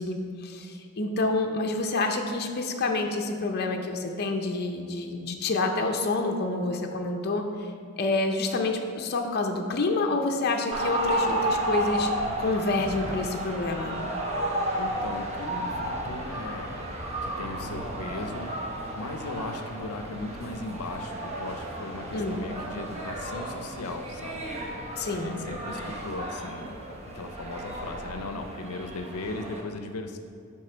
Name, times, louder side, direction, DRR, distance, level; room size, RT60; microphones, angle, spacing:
voice 1, 0.0-7.7 8.0-12.1 12.4-14.0 22.1-22.4 25.0-25.4, left 3 dB, 45° left, 3 dB, 0.6 m, -28 dB
sound 1, 10.7-29.6, right 1 dB, 30° right, 0.9 m, -33 dB
voice 2, 14.8-16.9 17.2-18.6 18.9-24.4 25.1-26.8 27.1-30.2, left 2 dB, 90° left, 6 dB, 0.5 m, -37 dB
10.0 x 3.6 x 4.4 m, 2.5 s
head